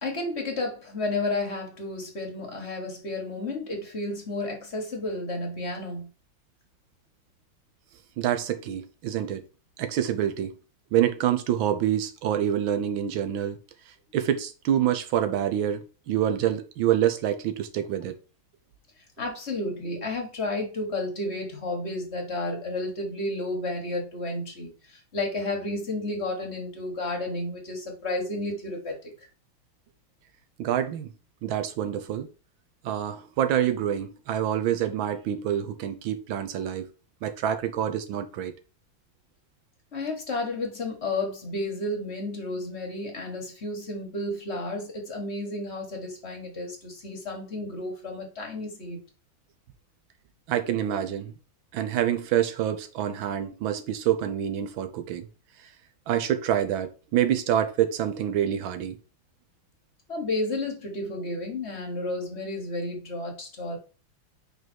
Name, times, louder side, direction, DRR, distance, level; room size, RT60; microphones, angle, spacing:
voice 1, 0.0-6.1 19.2-29.3 39.9-49.0 60.1-63.8, left 2 dB, 35° left, 1.7 m, -32 dB
voice 2, 8.2-9.4 9.8-10.5 10.9-13.6 14.1-18.2 30.6-31.1 31.4-32.3 32.8-36.9 37.2-38.5 50.5-51.3 51.7-55.3 56.1-59.0, right 10 dB, 80° right, 1.6 m, -26 dB
5.2 x 4.0 x 4.5 m
omnidirectional pair, 2.1 m